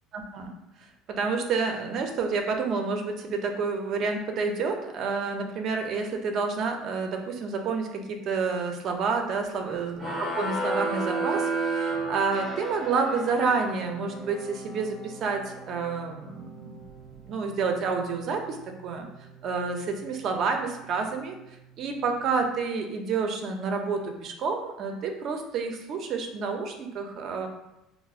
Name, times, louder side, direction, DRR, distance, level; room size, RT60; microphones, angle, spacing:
voice 1, 0.1-0.5 1.1-16.8 17.2-18.6 18.8-19.1 19.4-21.4 21.8-27.5, right 4 dB, 40° right, 4 dB, 0.5 m, -29 dB
sound 1, 10.0-12.9, right 2 dB, 15° right, 0.9 m, -29 dB
sound 2, 12.3-22.5, right 2 dB, 15° left, 0.5 m, -46 dB
5.6 x 2.0 x 2.4 m, 0.89 s
cardioid pair, 160°, 0 cm